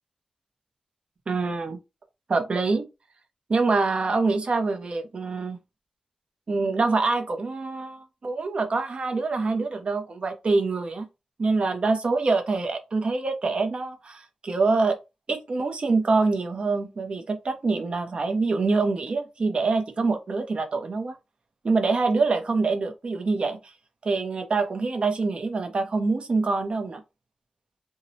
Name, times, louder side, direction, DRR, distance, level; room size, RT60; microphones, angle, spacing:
voice 1, 1.3-1.8 2.3-2.9 3.5-5.6 6.5-11.1 11.4-15.0 15.3-21.2 21.6-23.6 24.0-27.0, right 3 dB, 55° right, 0.5 m, -25 dB
2.7 x 2.0 x 2.6 m
wide cardioid pair, 90°, 2 cm